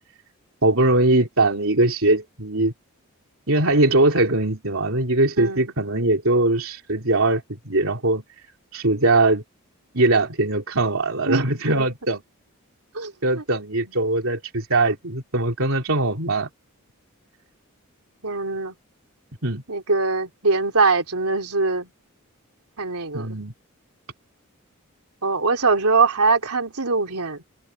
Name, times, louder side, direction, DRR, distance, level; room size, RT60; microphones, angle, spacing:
voice 1, 0.6-2.7 3.5-8.2 8.7-9.4 9.9-12.2 13.2-16.5 19.4-19.6 23.1-23.5, right 2 dB, 70° right, 3.3 m, -21 dB
voice 2, 11.3-11.9 12.9-13.4 18.2-18.7 19.7-21.9 22.8-23.4 25.2-27.4, right 4 dB, 85° right, 3.5 m, -22 dB
head